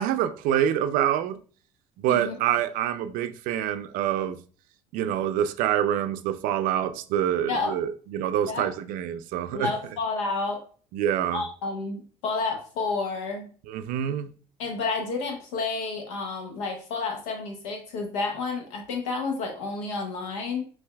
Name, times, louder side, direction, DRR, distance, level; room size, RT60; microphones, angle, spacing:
voice 1, 0.0-1.4 2.0-4.4 4.9-9.7 10.9-11.5 13.6-14.3, right 10 dB, 70° right, 0.4 m, -26 dB
voice 2, 9.5-10.6 11.3-13.5 14.6-20.6, left 4 dB, 85° left, 1.1 m, -30 dB
5.6 x 2.6 x 2.2 m
hypercardioid pair, 70°, 15 cm